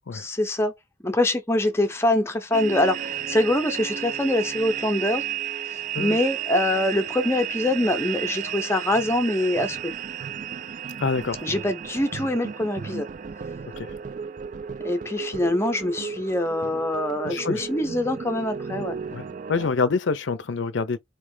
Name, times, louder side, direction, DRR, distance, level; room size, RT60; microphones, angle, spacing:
voice 1, 0.1-0.7 1.0-5.2 5.6-9.9 11.4-13.1 14.8-19.0, left 1 dB, 15° left, 0.8 m, -24 dB
sound 1, 2.5-19.7, right 8 dB, 40° right, 0.3 m, -33 dB
voice 2, 11.0-11.4 13.8-13.9 17.2-17.7 19.1-21.0, left 4 dB, 65° left, 0.5 m, -26 dB
4.4 x 3.1 x 3.2 m
head